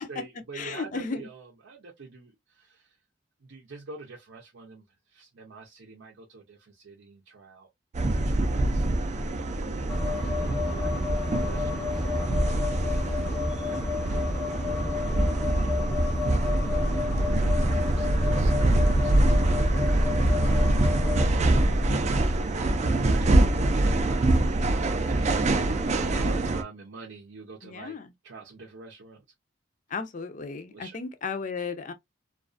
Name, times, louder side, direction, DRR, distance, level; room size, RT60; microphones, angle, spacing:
voice 1, 0.0-2.9 3.4-4.8 5.1-7.7 8.1-9.4 9.9-11.0 11.4-15.7 16.2-17.2 18.0-19.9 20.4-22.0 22.3-24.3 25.0-28.0 28.2-29.2 30.7-31.0, right 4 dB, 85° right, 0.6 m, -46 dB
voice 2, 0.5-1.3 15.9-16.4 21.4-22.0 27.6-28.1 29.9-31.9, left 4 dB, 40° left, 0.4 m, -35 dB
sound 1, 7.9-26.6, right 1 dB, 35° right, 0.3 m, -25 dB
sound 2, 9.9-21.3, left 3 dB, ahead, 0.7 m, -30 dB
2.4 x 2.3 x 2.4 m
head